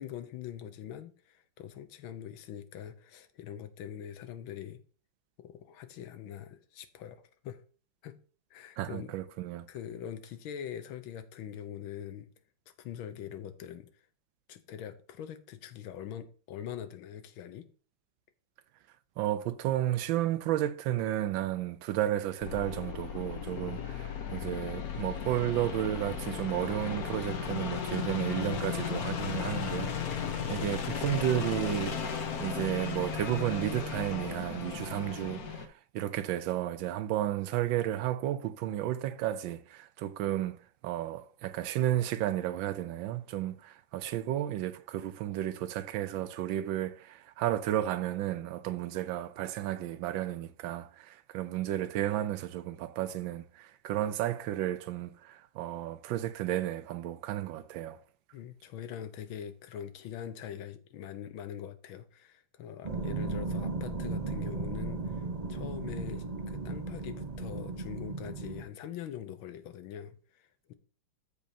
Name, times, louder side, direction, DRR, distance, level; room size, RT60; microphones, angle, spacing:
voice 1, 0.0-4.8 5.4-7.6 8.0-8.2 8.5-9.1 9.7-12.3 12.8-13.9 14.5-17.7 23.5-24.3 58.3-70.7, left 9 dB, 85° left, 1.6 m, -43 dB
voice 2, 8.8-9.7 19.2-40.6 40.8-58.0, right 13 dB, 80° right, 1.3 m, -33 dB
sound 1, 22.4-35.7, left 7 dB, 55° left, 1.3 m, -35 dB
sound 2, 62.8-68.6, right 3 dB, 65° right, 0.4 m, -36 dB
13.0 x 5.2 x 2.8 m
omnidirectional pair, 2.2 m